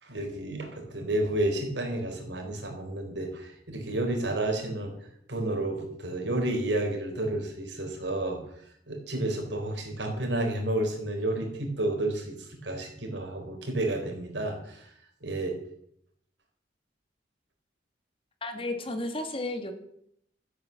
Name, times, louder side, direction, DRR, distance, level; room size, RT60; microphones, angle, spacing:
voice 1, 0.0-4.9 5.3-8.4 8.9-14.9 15.2-15.6, right 1 dB, 85° right, 2 dB, 4.0 m, -31 dB
voice 2, 18.4-19.7, left 2 dB, 30° left, 7 dB, 1.8 m, -33 dB
14.0 x 8.3 x 7.1 m, 0.71 s
head